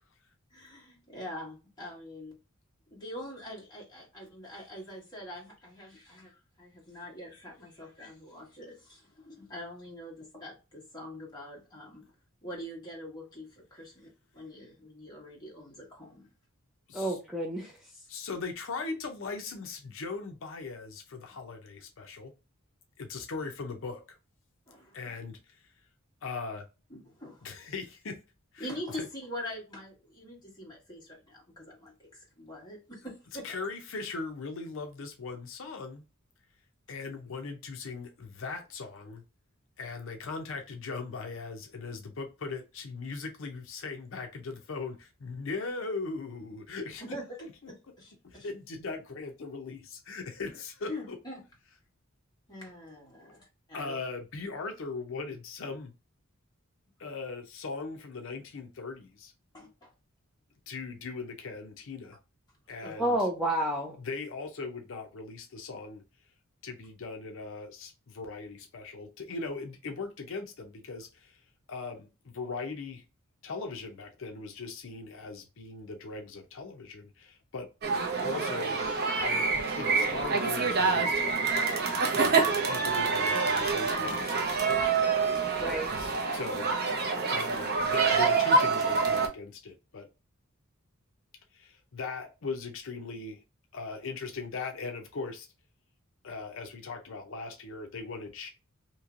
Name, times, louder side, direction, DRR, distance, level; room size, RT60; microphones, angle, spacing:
voice 1, 0.5-2.4 2.9-12.0 12.4-16.3 24.7-25.1 26.9-27.5 28.6-33.5 47.0-47.3 47.7-48.1 48.4-48.5 50.9-51.4 52.5-54.0 59.5-59.9 62.8-62.9, left 1 dB, 20° left, -3 dB, 1.5 m, -44 dB
voice 2, 16.9-17.7 63.0-64.0 85.6-85.9, right 1 dB, ahead, -1 dB, 0.5 m, -29 dB
voice 3, 18.1-22.3 23.0-24.2 24.9-25.7 26.2-26.7 27.4-28.2 28.5-29.1 33.4-36.0 36.9-39.2 39.8-47.0 47.4-47.7 48.2-51.2 53.7-55.9 57.0-59.3 60.7-62.2 62.7-63.3 64.0-66.0 66.6-71.4 71.7-73.0 73.4-77.7 78.2-78.8 79.2-81.8 82.1-85.0 86.0-86.7 87.3-90.1 91.5-93.4 93.7-95.5 96.2-98.5, left 4 dB, 65° left, 4 dB, 0.6 m, -39 dB
sound 1, 77.8-89.3, right 4 dB, 50° right, 0.7 m, -27 dB
3.0 x 2.7 x 2.4 m, 0.29 s
head